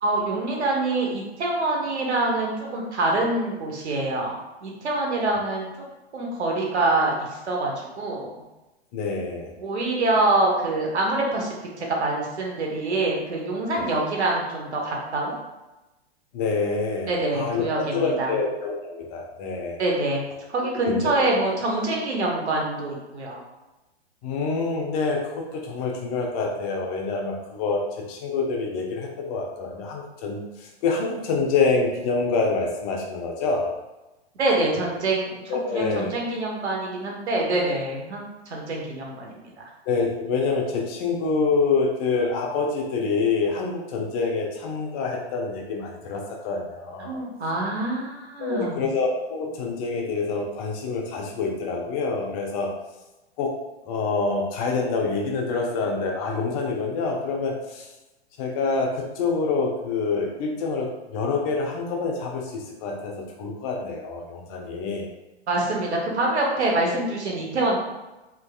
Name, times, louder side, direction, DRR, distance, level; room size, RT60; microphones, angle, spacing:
voice 1, 0.0-4.4 4.6-5.7 6.1-7.1 7.5-8.3 9.6-15.3 17.1-18.3 19.8-20.2 20.5-23.4 34.4-35.3 35.7-38.3 38.5-39.3 47.0-48.8 65.5-67.8, right 2 dB, 80° right, -1 dB, 1.1 m, -25 dB
voice 2, 8.9-9.5 13.7-13.9 16.3-19.8 20.8-21.3 24.2-33.7 35.5-36.1 39.9-47.2 48.4-52.7 53.4-53.5 53.9-57.9 58.4-65.1, left 4 dB, 35° left, 0 dB, 0.6 m, -26 dB
3.5 x 3.1 x 2.3 m, 1.0 s
hypercardioid pair, 125°, 33 cm